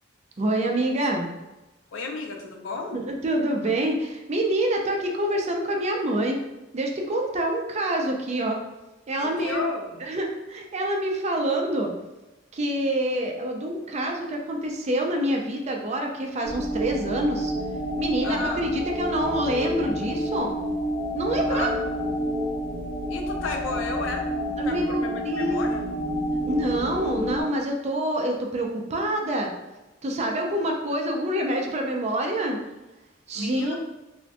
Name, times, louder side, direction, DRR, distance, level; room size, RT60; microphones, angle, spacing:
voice 1, 0.4-1.3 2.9-6.4 6.7-8.6 9.1-9.6 10.0-11.9 12.5-17.5 18.0-20.6 21.1-21.7 24.6-25.7 26.5-29.5 30.0-32.6 33.3-33.8, right 1 dB, 35° right, 1 dB, 0.4 m, -26 dB
voice 2, 1.9-3.0 9.2-10.1 18.2-18.7 21.5-21.7 23.1-24.3 24.7-25.8 33.3-33.8, left 3 dB, 80° left, 2 dB, 0.5 m, -33 dB
sound 1, 16.4-27.4, equal, 25° left, 0.8 m, -29 dB
3.7 x 2.5 x 2.2 m, 1.0 s
head